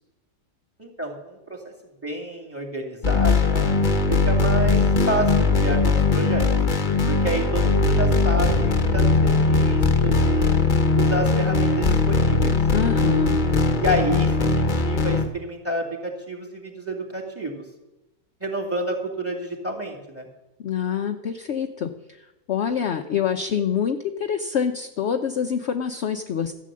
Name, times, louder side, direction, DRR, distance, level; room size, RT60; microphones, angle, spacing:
voice 1, 0.8-1.7 2.0-3.7 4.1-6.5 7.1-12.6 13.8-17.6 18.4-20.3, right 1 dB, 10° right, 3 dB, 2.2 m, -29 dB
sound 1, 3.0-15.3, left 3 dB, 35° left, 1.1 m, -20 dB
voice 2, 12.7-13.4 20.6-26.5, left 7 dB, 55° left, 6 dB, 0.9 m, -26 dB
14.0 x 8.4 x 7.5 m, 1.0 s
omnidirectional pair, 1.6 m